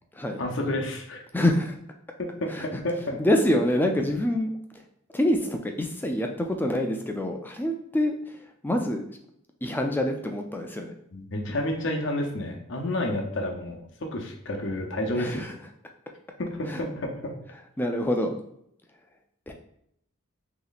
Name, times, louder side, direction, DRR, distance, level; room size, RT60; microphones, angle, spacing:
voice 1, 0.4-1.2 2.4-3.2 11.1-15.5 16.4-17.3, left 1 dB, 55° left, 1 dB, 0.7 m, -30 dB
voice 2, 1.3-1.8 2.5-2.8 3.2-4.8 5.1-9.0 9.6-10.9 15.1-15.6 16.7-16.8 17.8-18.4 19.5-19.6, left 1 dB, 10° left, 3 dB, 0.3 m, -26 dB
3.1 x 2.9 x 4.0 m, 0.73 s
head